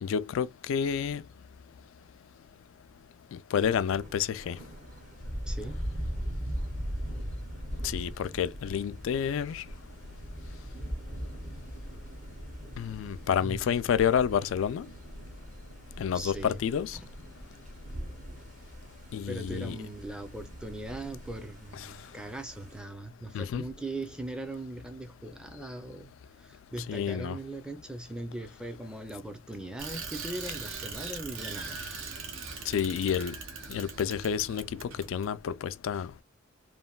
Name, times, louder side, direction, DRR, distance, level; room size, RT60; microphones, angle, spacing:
voice 1, 0.0-1.2 3.3-4.6 7.8-9.6 12.8-14.9 16.0-17.0 19.1-19.8 21.7-21.9 23.3-23.7 26.9-27.4 32.7-33.3 33.7-36.1, left 8 dB, 75° left, 0.3 m, -29 dB
Thunder, 3.6-22.8, equal, 35° right, 0.7 m, -40 dB
voice 2, 5.5-5.8 13.4-13.7 16.1-16.6 16.9-17.1 19.3-26.1 26.4-31.8, right 1 dB, 5° right, 0.4 m, -40 dB
Bicycle, 29.8-35.3, right 5 dB, 75° right, 0.8 m, -40 dB
3.2 x 2.1 x 2.3 m
head